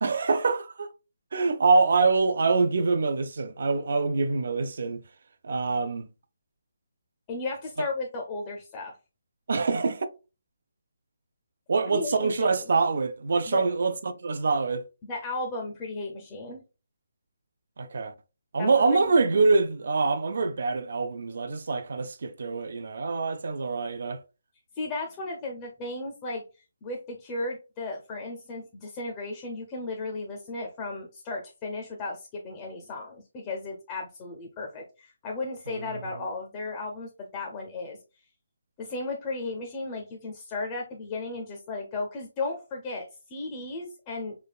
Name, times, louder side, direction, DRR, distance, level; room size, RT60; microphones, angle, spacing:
voice 1, 0.0-0.9 1.3-5.0 5.4-6.1 7.8-7.9 9.5-10.1 11.7-14.8 17.8-18.1 18.5-24.2, right 4 dB, 55° right, 0.4 m, -25 dB
voice 2, 7.3-8.9 11.9-12.7 13.5-13.6 15.0-16.6 18.6-19.0 24.7-26.4 26.8-38.0 38.8-44.4, left 3 dB, 15° left, 0.5 m, -35 dB
3.3 x 2.3 x 2.2 m
hypercardioid pair, 170°, 0 cm